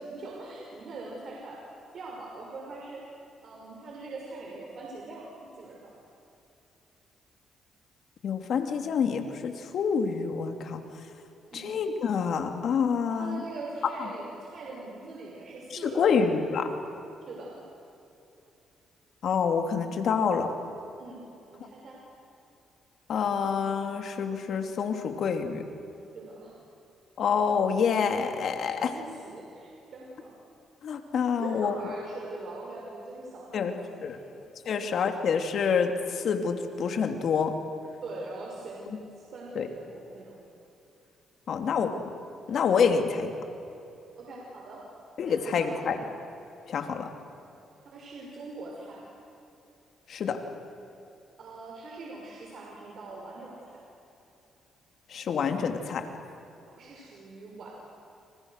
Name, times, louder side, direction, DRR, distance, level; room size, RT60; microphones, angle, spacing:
voice 1, 0.0-1.6 1.9-3.0 3.4-5.3 5.5-5.9 11.5-11.7 13.1-16.0 17.3-17.7 21.0-21.2 21.5-22.0 26.1-26.6 28.8-30.3 31.4-34.4 34.7-34.9 38.0-40.4 44.2-44.8 45.2-46.1 47.8-49.1 51.4-53.8 56.8-57.7, right 2 dB, 60° right, -2 dB, 5.9 m, -42 dB
voice 2, 8.2-10.8 11.5-13.4 15.8-16.8 19.2-20.5 23.1-25.7 27.2-28.9 30.8-31.7 33.5-33.7 34.0-34.2 34.7-37.6 39.5-39.7 41.5-42.0 42.5-43.3 45.2-46.0 46.7-47.1 50.1-50.4 55.1-56.1, left 6 dB, 65° left, 6 dB, 2.8 m, -27 dB
30.0 x 29.0 x 6.7 m, 2.8 s
cardioid pair, 90°, 0 cm